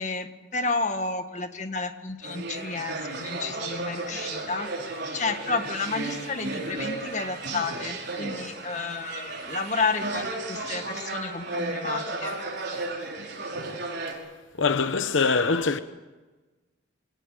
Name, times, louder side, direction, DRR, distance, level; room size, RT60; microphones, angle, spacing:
voice 1, 0.0-12.4, left 4 dB, 35° left, 1.7 m, -31 dB
sound 1, 2.2-14.1, right 2 dB, 55° right, 5.4 m, -34 dB
voice 2, 14.6-15.8, left 4 dB, 75° left, 0.9 m, -23 dB
23.0 x 18.5 x 9.1 m
head